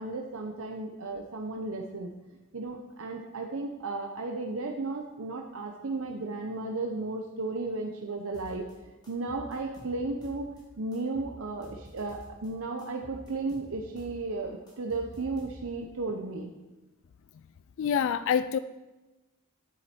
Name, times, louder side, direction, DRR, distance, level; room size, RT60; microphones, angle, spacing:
voice 1, 0.0-2.1 2.5-8.7 9.1-10.5 10.8-16.5, right 3 dB, 65° right, 0.8 m, -34 dB
sound 1, 8.3-8.7 9.0-10.6 10.9-12.5 12.8-15.9, equal, 20° left, 2.9 m, -49 dB
voice 2, 17.8-18.6, left 7 dB, 60° left, 0.3 m, -26 dB
10.0 x 7.5 x 4.4 m
head